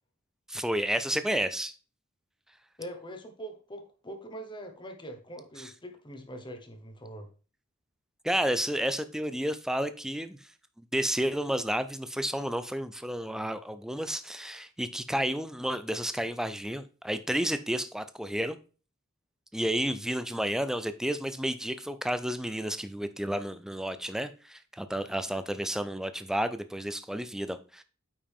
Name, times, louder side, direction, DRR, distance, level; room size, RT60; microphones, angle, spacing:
voice 1, 0.5-1.7 5.6-5.7 8.2-10.4 10.8-18.6 19.5-27.8, equal, 5° right, 0.5 m, -31 dB
voice 2, 2.8-7.3, right 1 dB, 25° left, 1.2 m, -43 dB
8.8 x 5.3 x 3.6 m
head